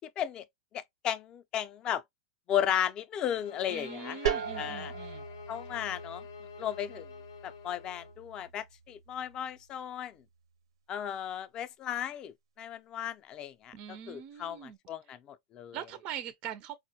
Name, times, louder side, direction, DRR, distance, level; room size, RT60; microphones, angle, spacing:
voice 1, 0.7-2.0 2.5-4.9 5.5-6.2 6.6-7.1 7.4-10.2 10.9-15.8, left 10 dB, 30° left, 0.4 m, -35 dB
sound 1, 3.3-8.2, left 7 dB, 80° left, 0.6 m, -47 dB
voice 2, 3.7-5.3 13.7-14.8 15.1-15.2 15.7-16.8, right 10 dB, 40° right, 0.4 m, -42 dB
sound 2, 4.3-9.8, right 8 dB, 85° right, 0.6 m, -39 dB
4.3 x 2.1 x 2.8 m
supercardioid pair, 135°, 3 cm